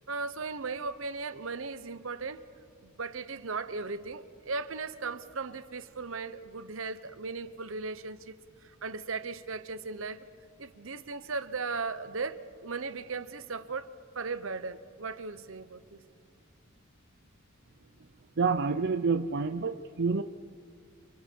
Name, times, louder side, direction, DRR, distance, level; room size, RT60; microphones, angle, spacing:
voice 1, 0.1-2.4 2.8-8.4 8.6-10.3 10.6-16.0, right 4 dB, 70° right, 12 dB, 1.1 m, -37 dB
voice 2, 18.4-20.2, right 4 dB, 55° right, 8 dB, 0.6 m, -28 dB
29.5 x 27.5 x 4.7 m, 2.3 s
head